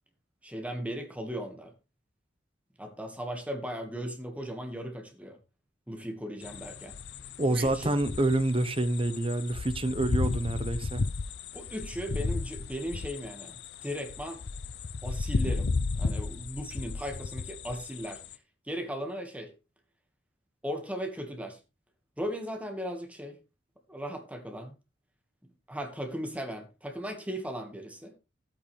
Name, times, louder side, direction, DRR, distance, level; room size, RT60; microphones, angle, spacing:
voice 1, 0.4-1.7 2.8-5.4 5.9-7.0 7.5-7.9 11.5-14.4 15.0-15.7 16.0-18.2 18.7-19.5 20.6-21.6 22.2-23.4 23.9-24.8 25.7-28.1, equal, 10° right, 1.7 m, -37 dB
sound 1, 6.4-18.4, left 3 dB, 65° left, 0.6 m, -34 dB
voice 2, 7.4-11.0, right 2 dB, 30° right, 1.0 m, -27 dB
12.5 x 8.9 x 3.4 m
head